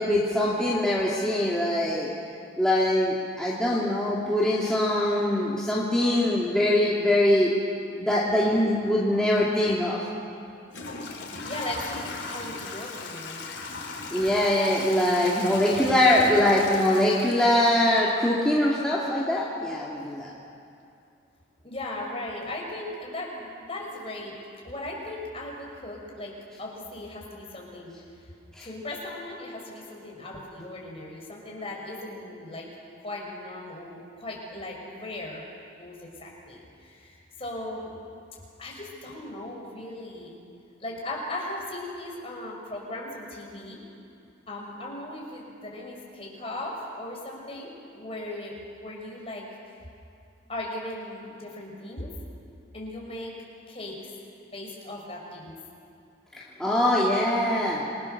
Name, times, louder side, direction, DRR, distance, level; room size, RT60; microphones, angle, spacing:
voice 1, 0.0-2.1 2.6-7.5 8.0-10.0 14.1-20.3 28.6-28.7 56.4-57.8, left 1 dB, 5° left, -7 dB, 2.5 m, -23 dB
Toilet flush / Trickle dribble, 9.9-10.0 10.7-18.5, left 3 dB, 65° left, 3.2 m, -38 dB
voice 2, 11.4-13.5 21.6-24.3 24.6-26.3 26.6-27.9 28.6-32.7 33.0-35.4 35.8-37.9 38.6-40.4 40.8-43.8 44.5-49.5 50.5-52.1 52.7-53.3 53.7-54.1 54.5-55.6, left 1 dB, 30° left, -2 dB, 5.3 m, -37 dB
28.5 x 22.0 x 6.7 m, 2.6 s
head